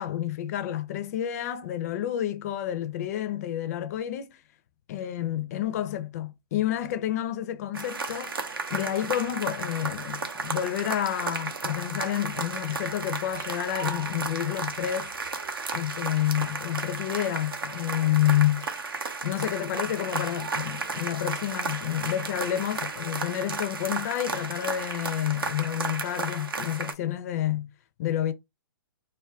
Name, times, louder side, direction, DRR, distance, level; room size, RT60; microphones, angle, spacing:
voice 1, 0.0-4.4 4.9-8.4 8.7-15.1 15.7-18.8 19.2-27.7 28.0-28.3, left 12 dB, 45° left, 0.4 m, -29 dB
sound 1, 7.7-26.9, right 4 dB, 80° right, 0.5 m, -34 dB
2.3 x 2.1 x 3.4 m
figure-of-eight pair, 120°, 12 cm